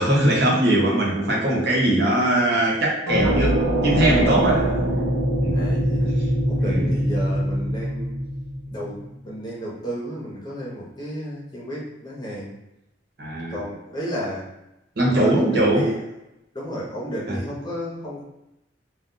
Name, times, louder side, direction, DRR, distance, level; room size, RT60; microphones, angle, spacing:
voice 1, 0.0-4.7 5.4-5.6 6.6-6.9 13.2-13.6 15.0-15.9 17.3-17.4, right 1 dB, 55° right, -4 dB, 0.9 m, -21 dB
sound 1, 3.1-8.9, equal, 80° right, 0.7 m, -23 dB
voice 2, 4.4-4.8 5.5-8.1 8.7-12.5 13.5-14.4 15.1-16.0 16.5-18.2, equal, 25° left, -5 dB, 0.8 m, -32 dB
2.4 x 2.2 x 3.8 m, 0.90 s
head